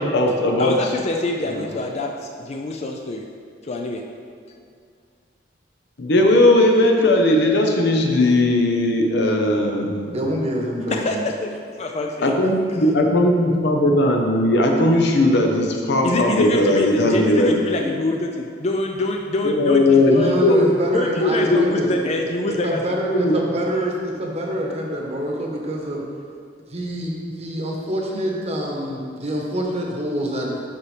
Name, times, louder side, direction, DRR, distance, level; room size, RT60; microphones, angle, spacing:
voice 1, 0.0-0.7 6.0-10.2 12.2-17.5 17.8-17.9 19.4-20.7 21.2-21.8 23.1-23.4, left 1 dB, 65° left, 2 dB, 0.8 m, -18 dB
voice 2, 0.6-3.2 3.6-4.0 10.9-12.3 16.0-20.4 20.9-22.9, left 2 dB, 35° left, 2 dB, 0.4 m, -26 dB
voice 3, 1.4-1.8 10.1-11.2 20.1-21.9 22.5-26.0 26.7-27.1 27.4-30.6, equal, 35° right, -1 dB, 1.0 m, -26 dB
12.0 x 4.3 x 3.3 m, 2.2 s
head